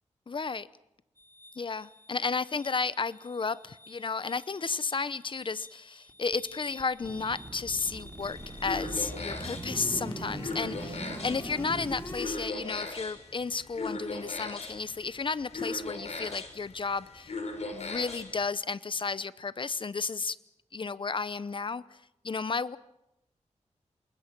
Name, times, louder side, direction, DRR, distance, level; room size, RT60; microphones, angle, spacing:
voice 1, 0.3-0.7 1.6-17.3 17.7-20.4 20.7-21.8 22.2-22.8, left 4 dB, 45° left, 17 dB, 0.8 m, -33 dB
sound 1, 1.2-12.5, left 1 dB, 20° left, 3.1 m, -46 dB
sound 2, 7.0-12.0, right 2 dB, 35° right, 4.1 m, -42 dB
sound 3, 8.2-18.4, left 3 dB, 65° left, 4.5 m, -39 dB
28.0 x 21.0 x 6.1 m, 0.87 s
wide cardioid pair, 105°, 12 cm